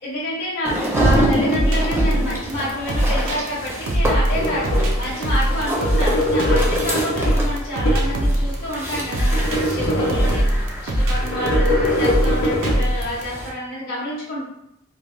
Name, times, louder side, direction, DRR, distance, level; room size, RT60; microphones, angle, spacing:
voice 1, 0.0-14.4, left 1 dB, 45° left, -9 dB, 0.8 m, -28 dB
sound 1, 0.6-13.5, right 1 dB, 10° right, 0.5 m, -27 dB
sound 2, 0.9-13.2, right 1 dB, 90° right, 0.5 m, -21 dB
sound 3, 4.3-5.1 5.6-8.2 8.7-10.7 11.2-12.8, left 1 dB, 85° left, 0.7 m, -23 dB
3.1 x 2.1 x 2.5 m, 0.80 s
head